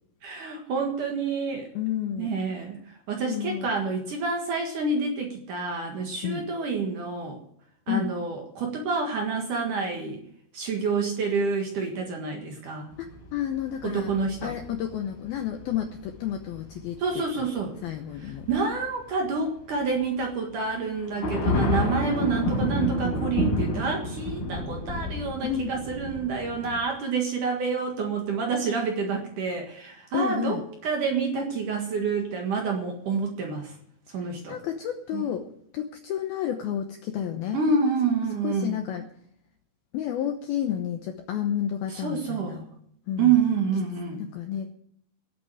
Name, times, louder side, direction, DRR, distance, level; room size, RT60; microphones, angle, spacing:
voice 1, 0.2-1.7 2.2-7.4 7.9-10.2 10.5-12.9 13.8-14.5 17.0-17.8 18.2-33.8 34.1-34.6 35.1-35.2 37.5-38.8 41.9-42.6 43.2-44.2, right 4 dB, 55° right, 2 dB, 2.5 m, -28 dB
voice 2, 1.8-2.4 3.3-3.7 6.2-6.4 7.9-8.1 13.0-14.1 14.4-17.0 17.4-17.5 17.8-18.5 25.4-25.7 30.1-30.6 34.5-35.5 35.7-37.6 38.4-39.1 39.9-42.7 43.1-43.3 44.2-44.7, left 10 dB, 75° left, 5 dB, 2.3 m, -30 dB
sound 1, 12.9-19.3 19.6-20.0 20.3-20.4 20.9-26.8, left 2 dB, 40° left, 5.8 m, -31 dB
16.5 x 8.4 x 7.7 m, 0.70 s
omnidirectional pair, 5.5 m